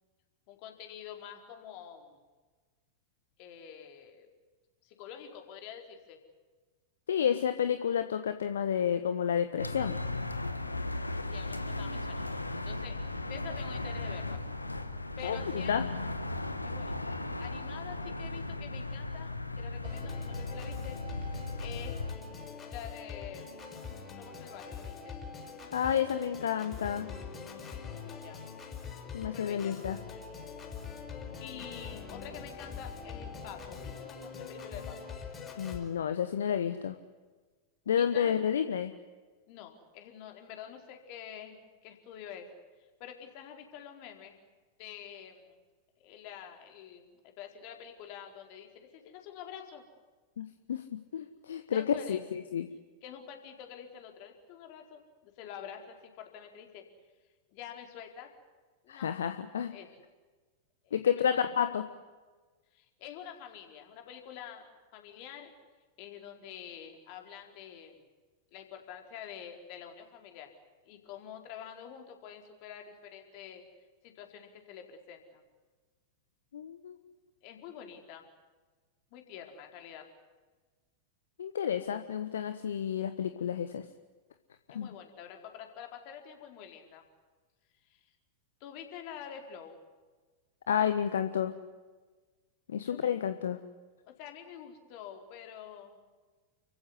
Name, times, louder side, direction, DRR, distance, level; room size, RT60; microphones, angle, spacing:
voice 1, 0.5-2.2 3.4-4.3 4.8-6.2 11.3-13.0 13.3-14.4 15.2-15.8 16.6-21.0 21.6-21.9 22.7-23.7 24.2-25.2 27.7-28.4 29.3-29.8 31.4-35.1 38.0-38.5 39.5-42.5 43.0-44.4 44.8-45.6 46.0-49.8 51.7-52.2 53.0-56.9 57.5-58.3 58.8-59.1 59.7-59.9 60.8-61.5 62.7-65.5 66.0-68.1 68.5-70.5 70.8-73.7 74.0-75.4 77.4-78.3 79.1-80.1 84.7-87.0 87.8-88.1 88.6-89.7 92.8-93.1 94.1-95.9, left 9 dB, 45° left, 4 dB, 4.5 m, -47 dB
voice 2, 7.1-10.0 15.2-15.4 15.7-15.8 25.7-27.1 29.1-30.0 35.6-37.0 37.9-38.9 50.4-50.8 51.1-52.6 58.9-59.7 60.9-61.8 76.5-77.0 81.4-83.8 84.7-84.9 90.7-91.5 92.7-93.6, left 8 dB, 65° left, 9 dB, 1.2 m, -30 dB
sound 1, 9.6-22.1, left 2 dB, 85° left, 1.6 m, -36 dB
Organ, 19.8-35.8, left 5 dB, 25° left, 6.9 m, -43 dB
30.0 x 16.0 x 9.8 m, 1.3 s
figure-of-eight pair, 90°, 0 cm